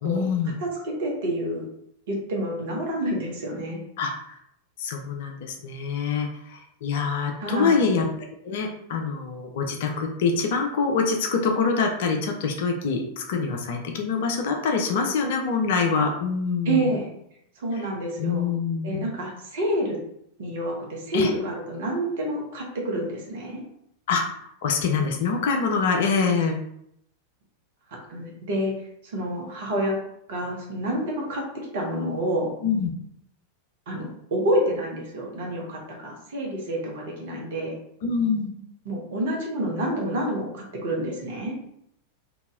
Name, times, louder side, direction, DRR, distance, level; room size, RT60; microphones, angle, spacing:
voice 1, 0.0-0.5 4.0-4.4 4.8-8.1 8.4-16.9 17.7-17.9 18.2-19.1 21.1-21.3 24.1-26.6 32.6-32.9 38.0-38.5, left 5 dB, 55° left, 2 dB, 0.5 m, -25 dB
voice 2, 0.6-1.6 2.1-3.8 7.4-7.9 16.6-17.1 17.6-18.5 18.8-20.0 20.4-23.6 28.1-28.7 29.0-30.0 30.3-31.4 31.7-32.5 33.9-37.8 38.8-41.5, right 1 dB, 55° right, -1 dB, 1.0 m, -28 dB
2.9 x 2.7 x 3.6 m, 0.74 s
figure-of-eight pair, 90°, 0 cm